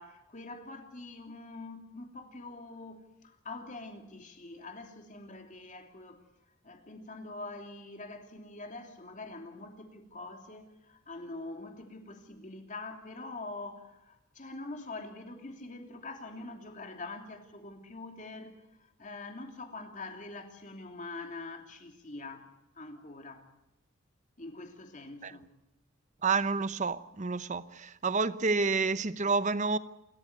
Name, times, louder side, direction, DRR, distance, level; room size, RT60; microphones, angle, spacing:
voice 1, 0.0-6.2 6.6-22.5 22.7-23.5 24.4-25.5, left 2 dB, 40° left, 3.0 m, -44 dB
voice 2, 26.2-29.8, right 4 dB, 35° right, 0.8 m, -29 dB
29.0 x 13.5 x 9.6 m
head